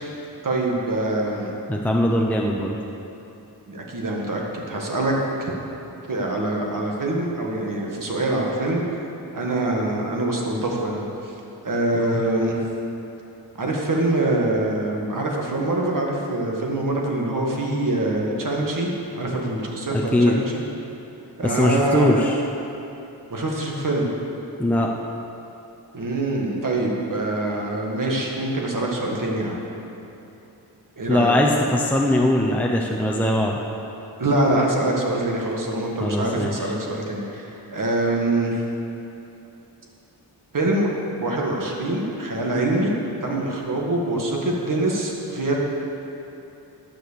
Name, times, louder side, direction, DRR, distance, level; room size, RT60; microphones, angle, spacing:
voice 1, 0.4-1.5 3.7-5.1 5.4-5.5 6.1-9.0 9.3-11.3 11.6-12.6 13.6-18.9 19.2-20.6 21.4-22.2 23.3-24.1 25.9-29.6 31.0-31.3 34.2-38.6 40.5-40.9 41.2-42.9 43.2-45.6, right 2 dB, 50° right, -1 dB, 1.8 m, -24 dB
voice 2, 1.7-2.8 11.9-12.2 19.9-20.4 21.4-22.4 24.6-24.9 31.1-33.6 36.0-36.7, left 1 dB, 5° left, -1 dB, 0.7 m, -21 dB
12.5 x 6.2 x 6.8 m, 2.9 s
wide cardioid pair, 105°, 40 cm